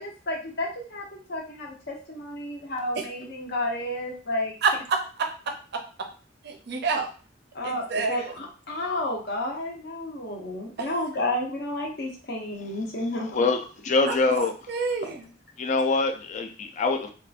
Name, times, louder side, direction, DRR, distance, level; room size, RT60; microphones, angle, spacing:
voice 1, 0.0-4.5 7.5-13.3, left 1 dB, 60° left, 0.8 m, -31 dB
voice 2, 4.6-5.3 5.7-5.8 6.4-7.1 7.6-8.3 10.8-10.9 14.3-15.2, right 4 dB, 60° right, 0.5 m, -28 dB
voice 3, 13.3-14.5 15.6-17.1, left 3 dB, 40° left, 0.3 m, -24 dB
2.8 x 2.3 x 2.4 m
head